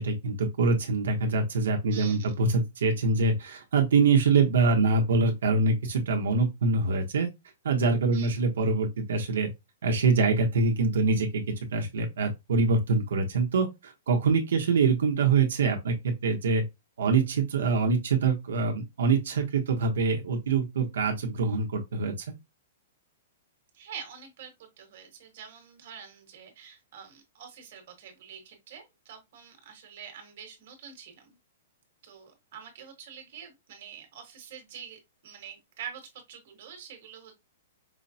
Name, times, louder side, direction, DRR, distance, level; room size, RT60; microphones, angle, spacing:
voice 1, 0.0-7.3 7.6-9.5 9.8-11.4 11.7-16.6 17.0-22.3, right 4 dB, 85° right, 0.8 m, -25 dB
voice 2, 1.9-2.3 8.1-8.3 23.7-31.4 32.0-37.3, right 7 dB, 45° right, 1.2 m, -46 dB
4.9 x 2.0 x 2.7 m
hypercardioid pair, 175°, 0 cm